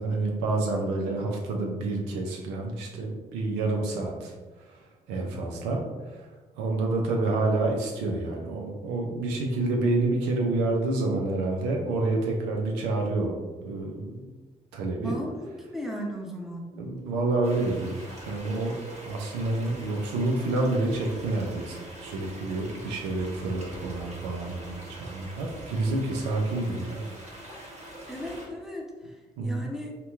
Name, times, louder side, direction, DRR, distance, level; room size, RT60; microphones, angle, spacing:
voice 1, 0.0-4.3 4.7-6.2 6.6-14.3 14.7-15.2 16.7-18.0 18.2-27.0 29.4-29.7, right 2 dB, 80° right, 1 dB, 0.5 m, -28 dB
voice 2, 15.0-16.7 28.1-29.1 29.4-30.0, equal, ahead, 0 dB, 0.8 m, -36 dB
sound 1, 17.4-28.5, right 1 dB, 40° right, 1.2 m, -44 dB
2.8 x 2.2 x 3.4 m, 1.3 s
hypercardioid pair, 45°, 17 cm